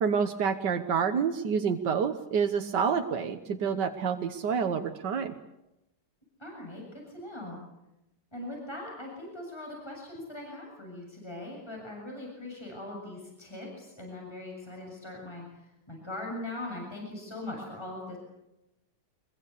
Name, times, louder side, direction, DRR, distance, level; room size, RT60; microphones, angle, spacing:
voice 1, 0.0-5.3, right 6 dB, 85° right, 7 dB, 1.8 m, -28 dB
voice 2, 6.4-7.6 8.3-15.5 15.9-18.2, left 2 dB, 15° left, 0 dB, 7.0 m, -40 dB
24.0 x 22.0 x 8.4 m, 0.91 s
omnidirectional pair, 1.8 m